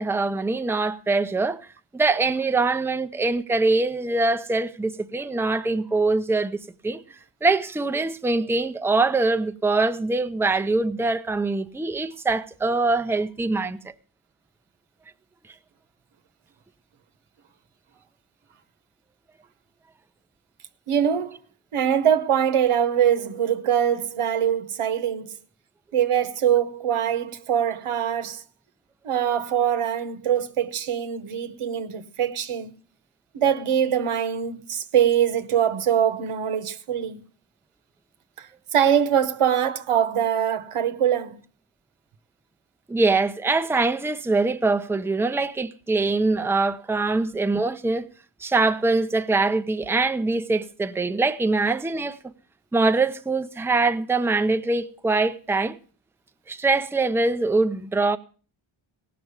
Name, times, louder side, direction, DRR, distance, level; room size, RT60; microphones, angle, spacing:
voice 1, 0.0-1.6 1.9-7.0 7.4-13.8 42.9-48.0 48.4-52.2 52.7-55.7 56.5-58.2, right 3 dB, 5° right, 0.6 m, -23 dB
voice 2, 20.9-21.4 21.7-25.4 25.9-28.4 29.0-32.7 33.3-37.2 38.4-41.4, right 9 dB, 85° right, 1.1 m, -23 dB
17.5 x 6.0 x 8.0 m
wide cardioid pair, 115°, 49 cm